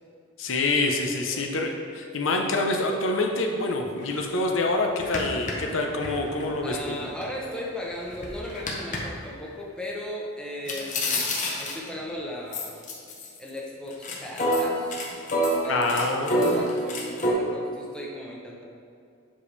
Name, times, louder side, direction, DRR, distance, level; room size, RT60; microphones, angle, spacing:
voice 1, 0.4-7.0 15.7-16.6, left 2 dB, 70° left, 2 dB, 0.7 m, -26 dB
sound 1, 4.0-4.1 4.5-4.6 5.0-7.3 7.7-9.0 10.7-12.0 12.5-13.6 13.9-17.3, equal, 35° left, 0.9 m, -27 dB
voice 2, 6.6-12.8 13.4-15.0 15.6-18.6, left 1 dB, 5° left, -3 dB, 0.8 m, -37 dB
7.5 x 5.0 x 3.3 m, 2.4 s
head